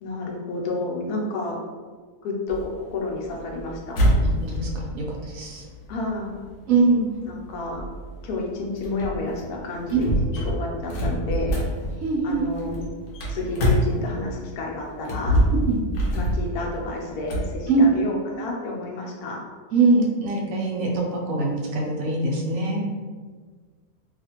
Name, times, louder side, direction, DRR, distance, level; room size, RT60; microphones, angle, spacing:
voice 1, 0.0-1.6 2.2-4.0 5.9-6.5 7.3-7.8 8.2-11.6 12.2-12.8 13.3-15.4 16.1-19.4, left 2 dB, 85° left, -1 dB, 1.1 m, -30 dB
sound 1, 2.5-14.5 14.9-17.5, equal, 65° left, 1.0 m, -26 dB
voice 2, 4.4-5.6 6.7-7.1 9.9-10.0 12.0-12.4 15.6-15.8 17.7-17.9 19.7-22.8, right 3 dB, 70° right, -1 dB, 0.9 m, -22 dB
2.7 x 2.4 x 2.9 m, 1.5 s
omnidirectional pair, 1.6 m